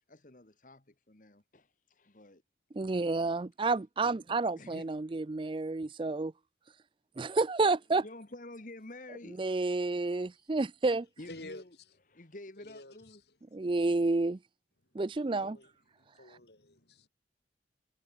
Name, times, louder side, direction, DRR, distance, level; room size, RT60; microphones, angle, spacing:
voice 1, 0.0-2.4 2.9-3.0 4.6-4.9 8.0-9.6 11.2-11.8 12.1-13.2, left 1 dB, 45° left, 1.7 m, -49 dB
voice 2, 2.7-6.3 7.2-8.0 9.4-11.1 13.5-14.4 14.9-15.6, right 3 dB, 25° right, 0.4 m, -30 dB
voice 3, 11.3-11.6 12.6-13.2 15.1-15.7 16.0-17.1, left 2 dB, 65° left, 4.5 m, -50 dB
head